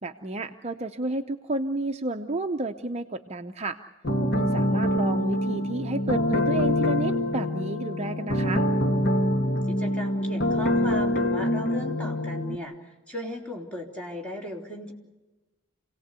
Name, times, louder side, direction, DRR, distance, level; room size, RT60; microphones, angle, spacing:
voice 1, 0.0-3.8 4.3-8.6, right 2 dB, 30° right, 6 dB, 0.7 m, -31 dB
sound 1, 4.0-12.6, left 1 dB, 50° left, 1.7 m, -25 dB
voice 2, 9.7-14.9, left 1 dB, 5° left, -1 dB, 3.5 m, -37 dB
27.5 x 18.0 x 8.2 m, 1.2 s
head